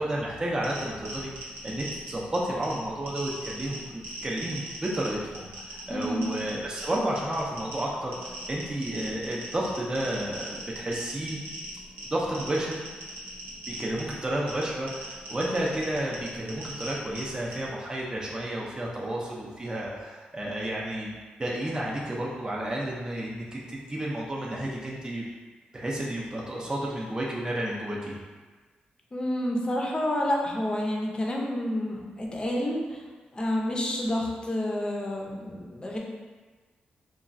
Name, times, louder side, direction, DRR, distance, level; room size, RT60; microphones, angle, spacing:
voice 1, 0.0-11.4 12.0-12.8 13.7-25.2 25.7-28.2, right 1 dB, 25° right, -4 dB, 0.5 m, -31 dB
sound 1, 0.6-17.7, right 1 dB, 90° right, 0.7 m, -41 dB
voice 2, 5.9-6.3 29.1-33.0 33.3-36.0, left 1 dB, 30° left, -1 dB, 0.5 m, -29 dB
3.0 x 2.3 x 2.5 m, 1.4 s
cardioid pair, 65°, 3 cm